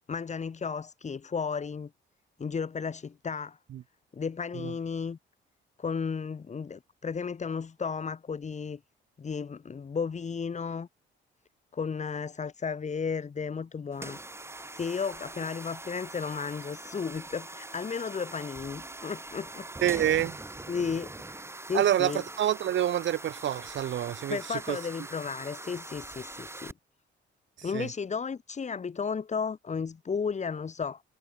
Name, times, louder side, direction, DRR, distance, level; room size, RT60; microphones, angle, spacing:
voice 1, 0.1-1.9 2.4-3.6 4.1-5.2 5.8-8.8 9.2-10.9 11.7-14.2 14.7-19.7 19.9-20.2 20.7-21.1 21.6-22.2 24.3-26.7 27.6-31.0, left 5 dB, 35° left, 2.1 m, -34 dB
sound 1, 13.9-26.7, right 2 dB, 15° right, 2.1 m, -43 dB
voice 2, 19.8-20.4 21.7-22.1 22.4-24.8 27.6-27.9, right 11 dB, 70° right, 2.6 m, -27 dB
cardioid pair, 90°, 20 cm